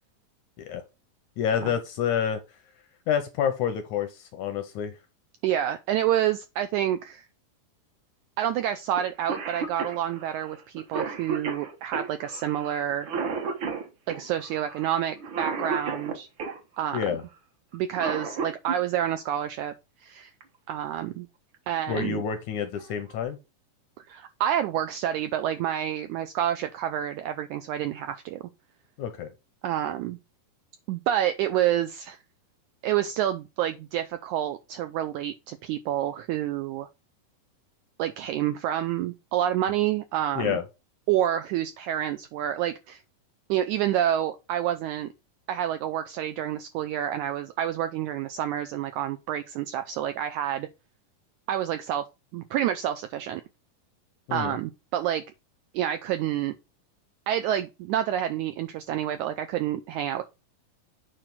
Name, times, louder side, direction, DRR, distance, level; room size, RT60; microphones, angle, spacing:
voice 1, 1.4-2.4 3.1-5.0 16.9-17.2 21.9-23.4 29.0-29.3 40.4-40.6 54.3-54.6, left 8 dB, 75° left, 1.9 m, -28 dB
voice 2, 5.4-7.2 8.4-13.1 14.1-16.3 16.8-17.0 17.7-19.7 20.0-20.3 20.7-21.3 21.7-22.2 24.1-28.4 29.6-30.2 30.9-32.2 32.8-36.9 38.0-40.6 41.1-43.0 43.5-45.1 45.5-50.7 51.5-52.0 52.3-53.4 54.3-55.2 55.7-56.5 57.3-60.2, right 11 dB, 85° right, 1.7 m, -28 dB
Cough, 9.0-9.1 9.3-16.6 17.7-18.8 20.4-20.5 21.5-21.8 22.3-22.4 22.8-23.2, right 5 dB, 60° right, 1.3 m, -33 dB
8.9 x 3.1 x 5.9 m
omnidirectional pair, 4.0 m